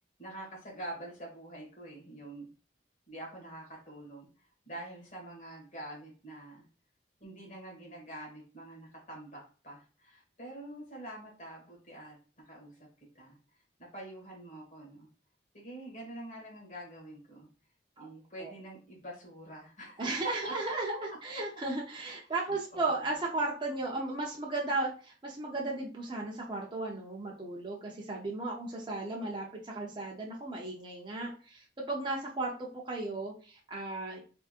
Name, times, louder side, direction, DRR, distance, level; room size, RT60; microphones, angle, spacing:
voice 1, 0.2-2.5 3.1-6.6 7.2-12.2 12.5-12.8 13.1-13.4 13.8-15.1 15.5-17.5 18.0-20.0 20.4-20.5 22.3-23.1, right 1 dB, 45° left, -2 dB, 1.6 m, -46 dB
voice 2, 20.0-34.2, right 2 dB, 25° right, -2 dB, 0.6 m, -35 dB
3.5 x 3.0 x 2.4 m, 0.37 s
head